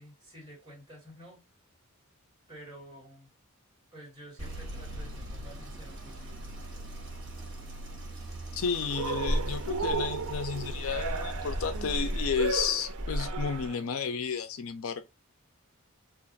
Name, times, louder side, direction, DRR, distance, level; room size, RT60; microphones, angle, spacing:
voice 1, 0.0-1.4 2.5-3.3 3.9-6.5, equal, 20° right, 1.6 m, -50 dB
sound 1, 4.4-13.7, equal, 60° right, 1.1 m, -37 dB
voice 2, 8.5-15.1, left 6 dB, 70° left, 0.5 m, -32 dB
Cheering, 8.9-13.9, right 5 dB, 80° right, 0.5 m, -35 dB
2.5 x 2.5 x 3.8 m
head